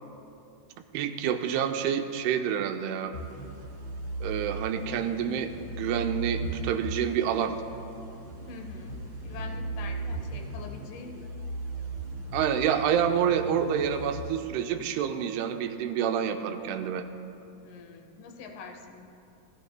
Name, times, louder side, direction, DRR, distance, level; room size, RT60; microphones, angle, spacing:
voice 1, 0.9-3.1 4.2-7.5 12.3-17.0, right 8 dB, 90° right, 7 dB, 2.7 m, -28 dB
sound 1, 3.1-15.0, right 2 dB, 40° right, 1.9 m, -37 dB
voice 2, 8.5-11.3 17.6-19.1, left 4 dB, 75° left, 4 dB, 2.0 m, -44 dB
18.5 x 14.0 x 2.2 m, 2.6 s
omnidirectional pair, 4.6 m